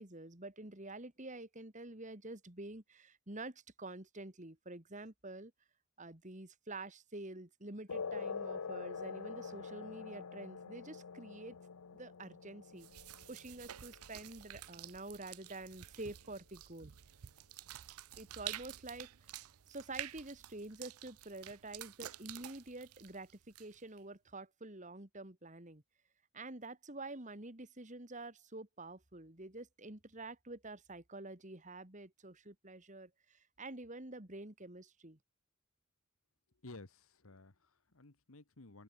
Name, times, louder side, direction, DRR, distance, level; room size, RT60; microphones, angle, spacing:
voice 1, 0.0-5.5 6.0-11.6 11.9-12.9 13.3-16.9 18.2-19.3 19.7-23.3 23.6-25.8 26.3-35.2, right 2 dB, 35° right, 2.3 m, -48 dB
sound 1, 7.9-14.9, left 5 dB, 85° left, 0.7 m, -45 dB
sound 2, 12.8-24.0, right 13 dB, 85° right, 0.5 m, -50 dB
voice 2, 36.6-38.8, left 2 dB, 70° left, 1.6 m, -55 dB
open air
head